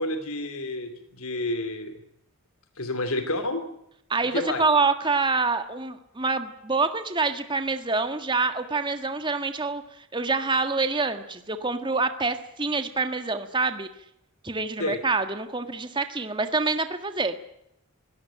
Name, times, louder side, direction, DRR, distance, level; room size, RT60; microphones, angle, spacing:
voice 1, 0.0-1.9 2.8-3.6 4.3-4.6 14.8-15.0, left 2 dB, 80° left, 9 dB, 2.8 m, -29 dB
voice 2, 4.1-13.9 14.4-17.3, right 3 dB, 20° right, 8 dB, 1.6 m, -26 dB
23.0 x 17.5 x 10.0 m, 0.78 s
head